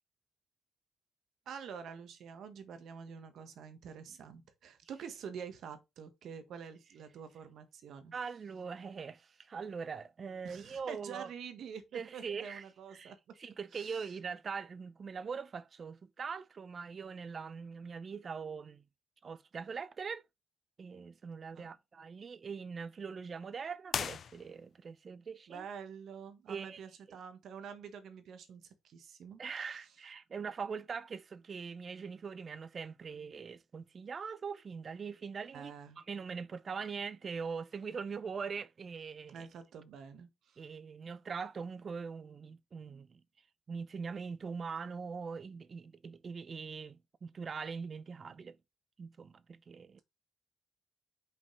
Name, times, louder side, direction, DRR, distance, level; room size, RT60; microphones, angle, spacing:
voice 1, 1.4-8.1 10.4-13.4 13.7-14.1 21.5-21.7 25.5-29.7 35.5-36.0 39.3-40.6, right 7 dB, 70° right, 1.4 m, -47 dB
voice 2, 8.1-11.3 11.9-12.6 12.9-13.1 13.4-18.8 19.2-20.2 20.8-25.7 26.5-26.8 27.1-27.2 29.4-39.5 40.6-43.2 43.7-48.6 49.0-50.0, right 5 dB, 45° right, 0.6 m, -42 dB
sound 1, 23.9-24.9, left 7 dB, 55° left, 0.4 m, -38 dB
5.5 x 5.2 x 3.3 m
cardioid pair, 90°, 0 cm